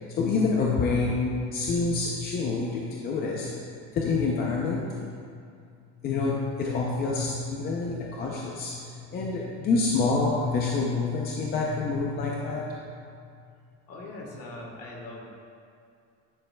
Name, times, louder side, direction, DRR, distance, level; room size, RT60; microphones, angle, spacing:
voice 1, 0.2-3.5 3.9-5.0 6.0-8.8 9.1-12.6, left 4 dB, 30° left, -2 dB, 0.5 m, -27 dB
voice 2, 13.9-15.3, left 2 dB, 50° left, -1 dB, 1.4 m, -41 dB
10.5 x 6.8 x 2.2 m, 2.4 s
cardioid pair, 175°, 32 cm